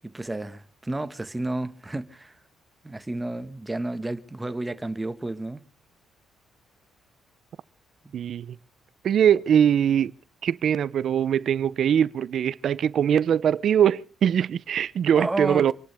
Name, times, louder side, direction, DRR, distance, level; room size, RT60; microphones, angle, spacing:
voice 1, 0.0-2.3 2.8-5.6 8.0-8.1 15.1-15.7, right 2 dB, 15° right, 1.6 m, -31 dB
voice 2, 8.1-8.6 9.0-10.1 10.4-15.7, right 9 dB, 65° right, 0.6 m, -22 dB
27.0 x 11.5 x 3.6 m
cardioid pair, 90°, 0 cm